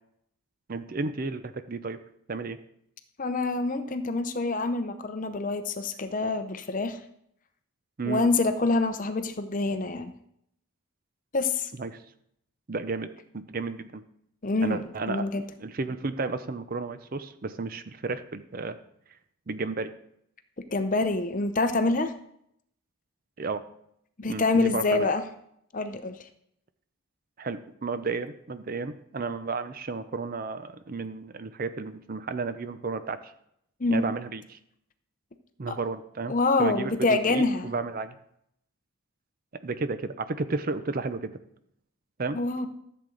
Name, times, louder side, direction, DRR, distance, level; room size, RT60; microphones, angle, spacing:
voice 1, 0.7-2.0 2.3-2.6 8.0-8.3 11.7-12.0 12.7-14.0 14.6-18.8 19.5-19.9 23.4-23.6 24.3-25.1 27.4-33.3 33.9-34.6 35.6-38.1 39.6-41.3 42.2-42.4, right 3 dB, 40° right, 12 dB, 0.5 m, -33 dB
voice 2, 3.2-7.0 8.1-10.1 11.3-11.7 14.4-15.4 20.7-22.1 24.2-25.2 25.7-26.2 33.8-34.0 35.7-35.8 36.3-37.7 42.3-42.7, left 3 dB, 35° left, 9 dB, 0.7 m, -26 dB
13.5 x 7.7 x 3.9 m, 0.73 s
head